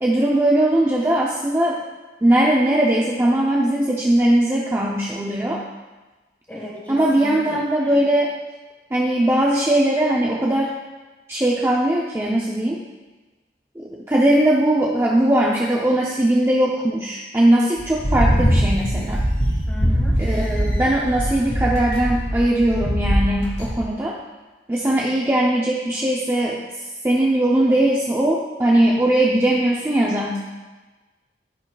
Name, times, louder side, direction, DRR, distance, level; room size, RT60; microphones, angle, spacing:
voice 1, 0.0-1.8 2.2-5.6 6.9-8.3 8.9-10.8 11.3-12.8 13.8-19.2 20.2-24.2 24.7-30.4, right 1 dB, 15° right, -3 dB, 0.6 m, -20 dB
voice 2, 6.5-8.0 19.7-20.2, equal, 10° left, -2 dB, 1.5 m, -36 dB
sound 1, 17.8-23.8, equal, 35° left, 1.9 m, -21 dB
13.5 x 5.6 x 2.3 m, 1.2 s
head